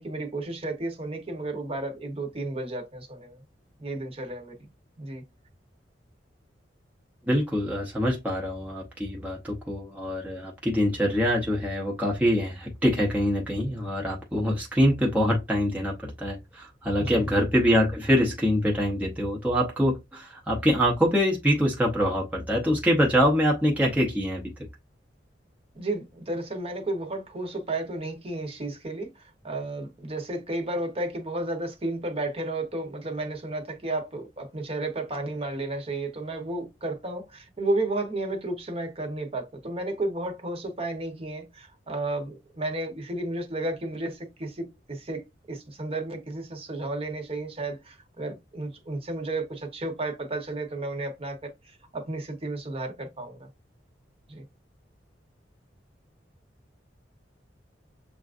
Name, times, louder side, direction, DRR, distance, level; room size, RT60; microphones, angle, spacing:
voice 1, 0.0-3.4 3.8-4.5 5.0-5.2 17.0-17.2 25.7-53.5 54.3-54.4, right 2 dB, 35° right, 1.0 m, -32 dB
voice 2, 7.3-24.4, equal, 10° right, 0.8 m, -24 dB
6.8 x 2.5 x 2.5 m
head